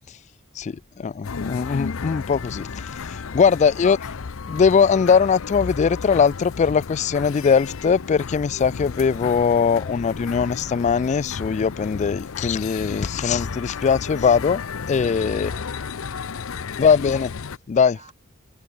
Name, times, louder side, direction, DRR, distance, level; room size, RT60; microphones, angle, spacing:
voice 1, 0.6-3.0 3.3-4.0 4.5-14.6 14.9-15.5 16.8-17.3 17.7-18.0, left 6 dB, 35° left, 0.3 m, -20 dB
sound 1, 1.2-17.6, left 5 dB, 70° left, 0.6 m, -33 dB
voice 2, 3.0-3.5 15.2-16.7 17.8-18.1, right 3 dB, 30° right, 4.0 m, -53 dB
open air
head